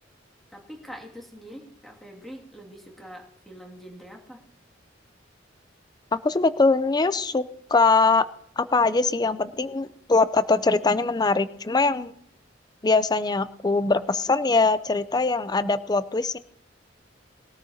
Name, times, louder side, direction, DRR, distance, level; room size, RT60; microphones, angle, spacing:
voice 1, 0.5-4.4, equal, ahead, -1 dB, 2.3 m, -44 dB
voice 2, 6.1-8.2 8.6-12.1 12.8-16.4, left 3 dB, 20° left, 14 dB, 0.5 m, -22 dB
21.5 x 13.5 x 2.8 m, 0.69 s
head